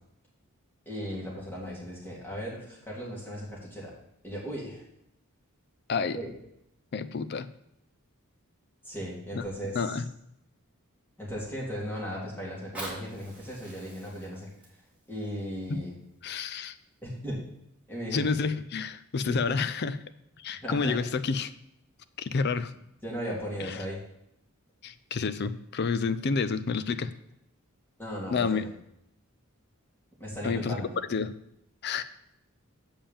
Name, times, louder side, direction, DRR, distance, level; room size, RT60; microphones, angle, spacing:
voice 1, 0.9-3.9 4.2-4.8 6.1-6.3 8.8-10.0 11.2-14.5 15.1-16.0 17.0-17.4 17.9-18.2 19.2-19.5 20.6-21.0 23.0-24.0 28.0-28.7 30.2-30.9, equal, 10° left, -5 dB, 2.7 m, -36 dB
voice 2, 6.9-7.5 9.3-9.4 9.7-10.1 15.7-15.8 16.2-16.7 18.1-20.0 20.4-21.5 22.2-22.7 23.6-23.7 24.8-27.1 28.3-28.7 30.4-30.8 31.1-31.4 31.8-32.0, left 5 dB, 50° left, 13 dB, 0.5 m, -29 dB
Fire, 12.5-17.5 18.1-18.2, right 1 dB, 5° right, 2.6 m, -46 dB
7.2 x 5.3 x 7.1 m, 0.77 s
head